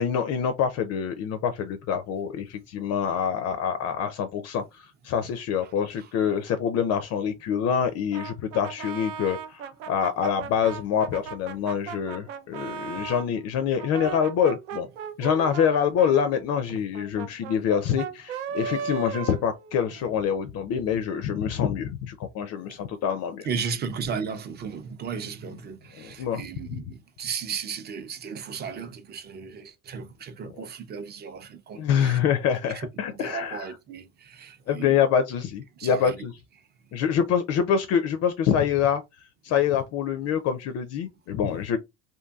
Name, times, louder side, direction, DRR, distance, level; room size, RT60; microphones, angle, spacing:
voice 1, 0.0-14.9 15.2-23.5 26.0-26.4 26.7-26.8 31.8-33.7 34.7-36.3 36.9-39.0 39.4-41.8, left 8 dB, 45° left, 0.4 m, -26 dB
Brass instrument, 8.1-13.3 13.8-20.1, right 7 dB, 80° right, 0.5 m, -37 dB
voice 2, 23.4-32.2 32.7-34.9 35.8-36.2, right 6 dB, 30° right, 0.5 m, -35 dB
2.6 x 2.6 x 2.2 m
supercardioid pair, 90°, 36 cm